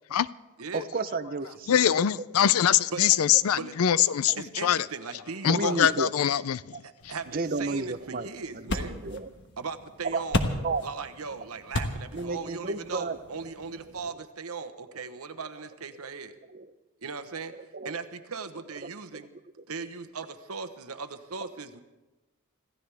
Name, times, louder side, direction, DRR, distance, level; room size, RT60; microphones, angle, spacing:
voice 1, 0.7-2.1 4.3-4.4 5.4-6.1 6.7-6.8 7.3-9.3 10.1-10.2 10.6-10.8 12.1-13.2 13.9-14.0 16.5-16.7 17.7-18.0, right 3 dB, 40° right, 0.7 m, -32 dB
voice 2, 1.7-4.3 4.6-4.9 5.4-6.8, left 9 dB, 80° left, 0.4 m, -23 dB
voice 3, 4.4-6.0 6.8-9.0 9.6-10.4 10.8-16.4 17.0-17.6 17.8-19.3 19.7-21.8, right 5 dB, 90° right, 1.1 m, -38 dB
sound 1, 7.0-14.1, left 1 dB, 55° left, 1.3 m, -36 dB
26.0 x 15.0 x 3.5 m
head